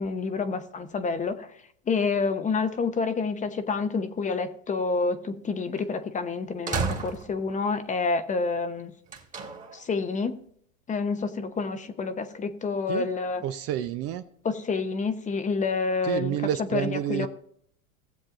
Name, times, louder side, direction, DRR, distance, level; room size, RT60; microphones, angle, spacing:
voice 1, 0.0-1.6 1.9-8.9 9.7-10.3 10.9-13.4 14.4-17.3, left 4 dB, 20° left, 10 dB, 0.7 m, -28 dB
sound 1, 5.8-5.9 6.7-7.6 9.1-9.8, right 5 dB, 20° right, 1.7 m, -32 dB
voice 2, 13.4-14.2 16.1-17.3, right 11 dB, 35° right, 11 dB, 0.6 m, -29 dB
17.0 x 7.4 x 2.5 m, 0.64 s
hypercardioid pair, 110°, 41 cm